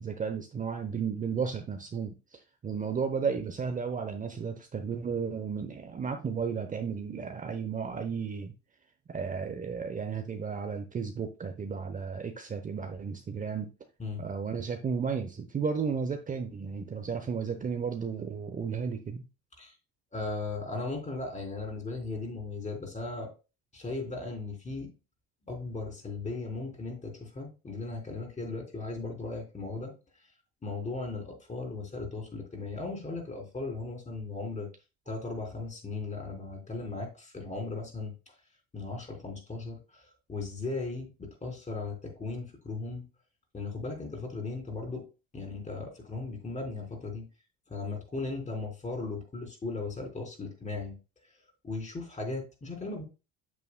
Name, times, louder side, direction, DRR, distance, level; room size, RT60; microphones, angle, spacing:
voice 1, 0.0-8.5 9.1-13.7 14.2-19.2, right 6 dB, 25° right, 0.8 m, -33 dB
voice 2, 20.1-23.3 23.7-24.9 25.4-29.9 30.6-34.7 35.1-38.1 38.7-43.0 43.5-45.0 45.3-47.3 47.7-51.0 51.6-53.0, left 3 dB, 25° left, 3.4 m, -37 dB
8.5 x 7.0 x 2.2 m
supercardioid pair, 95°, 30 cm